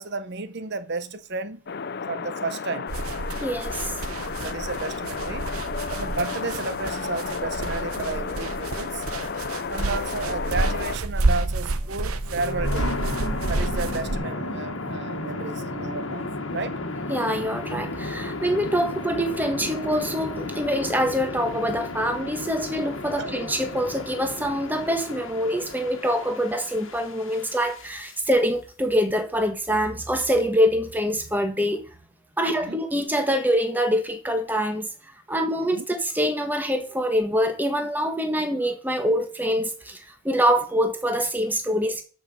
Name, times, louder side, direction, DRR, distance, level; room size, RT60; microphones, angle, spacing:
voice 1, 0.0-1.7 2.1-2.9 4.4-5.5 5.9-9.0 9.7-13.0 13.5-16.8 23.2-23.3 32.5-32.8 35.6-35.9, right 3 dB, 50° right, 0.9 m, -32 dB
sound 1, 1.7-11.0, left 5 dB, 45° left, 0.5 m, -32 dB
sound 2, 2.9-14.2, right 2 dB, 80° right, 0.9 m, -29 dB
voice 2, 3.4-4.2 17.1-31.8 32.4-34.9 35.3-42.0, equal, 10° right, 1.3 m, -25 dB
sound 3, 12.2-28.1, left 2 dB, 65° left, 1.6 m, -33 dB
13.0 x 5.4 x 5.5 m
head